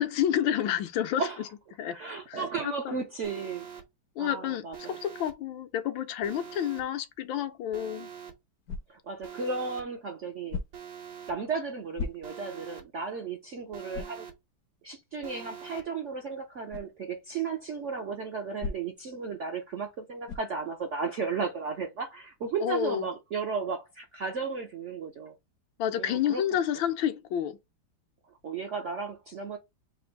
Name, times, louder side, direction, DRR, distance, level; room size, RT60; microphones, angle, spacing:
voice 1, 0.0-1.3 1.8-2.0 2.3-3.0 4.2-8.1 22.6-23.1 25.8-27.6, left 10 dB, 80° left, 1.4 m, -29 dB
voice 2, 1.9-3.7 4.2-5.0 8.9-10.6 11.3-14.3 14.8-25.3 26.0-26.6 28.4-29.6, right 5 dB, 65° right, 0.7 m, -34 dB
Alarm, 3.2-3.8 4.7-5.3 6.2-6.8 7.7-8.3 9.2-9.8 10.7-11.3 12.2-12.8 13.7-14.3 15.2-15.8, right 8 dB, 80° right, 1.7 m, -44 dB
sound 1, 8.6-9.2 10.5-11.0 11.9-12.6 13.1-13.2 13.9-14.3 16.7-16.9 18.6-19.1 20.3-20.6, left 4 dB, 65° left, 1.0 m, -37 dB
3.9 x 2.6 x 4.4 m
omnidirectional pair, 2.1 m